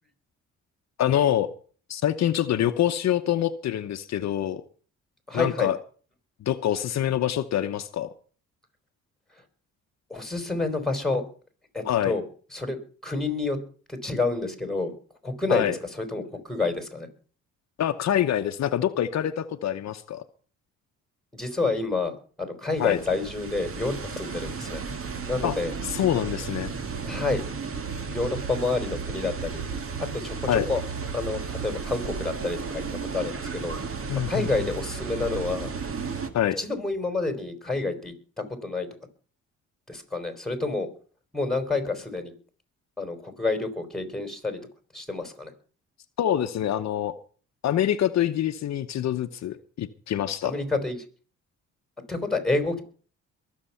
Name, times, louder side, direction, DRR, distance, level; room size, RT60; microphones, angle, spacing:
voice 1, 1.0-1.5 1.9-4.6 5.3-5.8 6.4-8.1 11.8-12.1 15.5-15.7 17.8-20.2 22.8-23.0 25.4-25.6 25.8-26.7 30.5-30.7 34.1-34.5 36.3-36.6 46.2-47.1 47.6-50.5, left 11 dB, 60° left, 8 dB, 0.9 m, -25 dB
voice 2, 5.3-5.7 10.1-11.2 11.7-12.2 12.5-12.8 13.0-13.6 13.9-14.9 15.2-17.1 21.3-24.8 25.3-25.7 27.0-27.4 28.1-29.7 30.0-30.8 31.1-32.8 33.1-33.8 34.3-35.7 36.6-38.9 39.9-40.9 41.3-42.3 43.0-44.6 44.9-45.5 50.4-51.0 52.1-52.8, left 3 dB, ahead, 7 dB, 4.3 m, -29 dB
sound 1, 22.8-36.3, right 5 dB, 45° right, 2.0 m, -34 dB
22.5 x 7.5 x 5.7 m, 0.41 s
cardioid pair, 90°, 30 cm